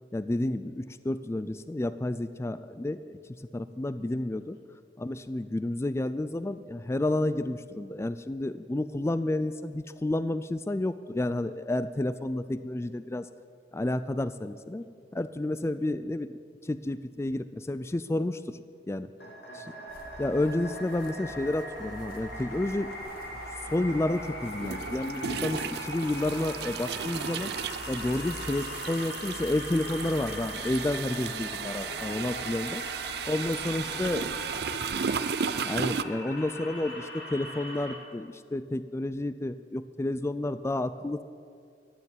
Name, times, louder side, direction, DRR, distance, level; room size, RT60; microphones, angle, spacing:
voice 1, 0.1-3.2 3.5-4.6 5.0-13.3 13.7-14.8 15.1-16.4 16.6-18.6 18.9-19.1 20.2-22.9 23.7-27.5 27.9-32.8 33.2-34.2 35.6-41.2, left 1 dB, 15° left, 13 dB, 0.4 m, -30 dB
voice 2, 4.4-4.7 14.8-15.1 19.2-20.0 31.8-32.3 33.3-35.2, left 1 dB, 90° left, 4 dB, 2.1 m, -52 dB
sound 1, 19.2-37.9, left 1 dB, 70° left, 3.5 m, -41 dB
sound 2, 19.9-34.4, left 2 dB, 55° left, 1.4 m, -48 dB
sound 3, 23.0-23.1 24.5-36.0, right 7 dB, 65° right, 0.5 m, -35 dB
15.0 x 9.6 x 9.6 m, 2.3 s
head